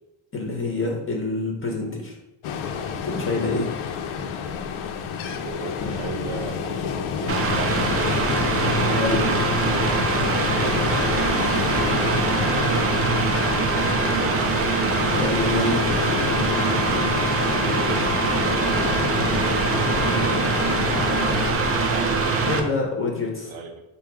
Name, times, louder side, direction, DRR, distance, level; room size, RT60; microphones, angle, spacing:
voice 1, 0.3-2.1 3.0-3.7 8.9-9.2 15.1-16.0 22.5-23.5, left 3 dB, 25° left, 0 dB, 0.6 m, -26 dB
Ocean, 2.4-21.6, left 7 dB, 90° left, 0.6 m, -28 dB
voice 2, 5.2-7.8 9.6-14.7 17.6-19.2 21.6-22.7 23.4-23.7, right 5 dB, 75° right, 5 dB, 0.8 m, -36 dB
Mechanical fan, 7.3-22.6, right 3 dB, 30° right, 0.4 m, -23 dB
3.8 x 2.7 x 4.7 m, 0.94 s
cardioid pair, 135°, 47 cm